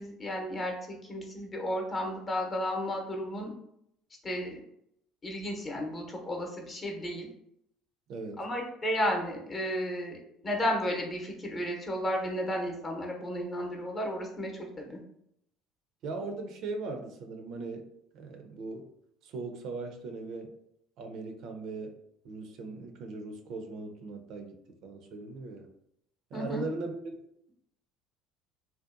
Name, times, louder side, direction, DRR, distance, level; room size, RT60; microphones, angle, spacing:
voice 1, 0.0-3.5 4.2-4.6 5.2-7.3 8.4-10.2 10.4-15.0 26.3-26.6, equal, 35° left, 1 dB, 0.7 m, -33 dB
voice 2, 8.1-8.4 16.0-18.9 19.2-20.5 21.0-22.0 22.2-25.7 26.3-27.0, right 3 dB, 65° right, 4 dB, 0.4 m, -39 dB
2.6 x 2.2 x 2.4 m, 0.75 s
hypercardioid pair, 70°, 0 cm